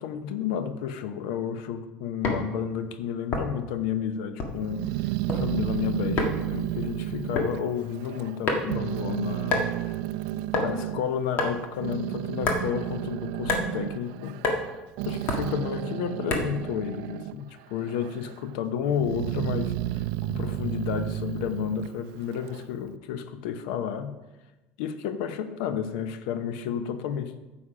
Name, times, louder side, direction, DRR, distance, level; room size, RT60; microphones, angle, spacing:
voice 1, 0.0-9.7 10.5-14.3 15.0-24.1 24.8-27.4, left 8 dB, 85° left, 11 dB, 0.8 m, -31 dB
sound 1, 2.2-2.5 3.3-3.7 4.4-4.7 5.0-5.4 6.2-6.4 7.4-7.5 8.4-8.8 9.5-9.7 10.5-10.7 11.4-11.6 12.4-12.6 13.5-13.7 14.4-14.6 15.3-15.5 16.3-16.6, left 3 dB, 45° left, 1.7 m, -26 dB
Growling, 4.6-8.4 8.7-11.0 11.6-17.4 17.7-18.4 18.9-22.7, right 15 dB, 75° right, 0.3 m, -32 dB
9.8 x 7.1 x 5.0 m, 1.1 s
cardioid pair, 140°, 5 cm